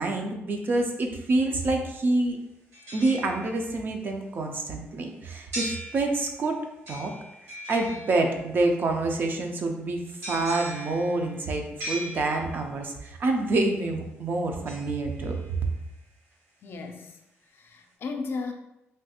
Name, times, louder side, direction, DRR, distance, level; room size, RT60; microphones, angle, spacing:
voice 1, 0.0-2.4 2.9-6.6 6.9-7.1 7.7-15.4, right 2 dB, 45° right, 3 dB, 0.4 m, -27 dB
sound 1, 2.7-3.9 5.5-6.5 6.9-8.6 10.2-12.8 14.7-15.8 16.3-16.4, equal, 75° right, 1.5 m, -39 dB
voice 2, 16.6-17.2 17.5-18.5, left 4 dB, 55° left, 4 dB, 0.4 m, -35 dB
3.2 x 2.3 x 2.8 m, 0.89 s
cardioid pair, 125°, 5 cm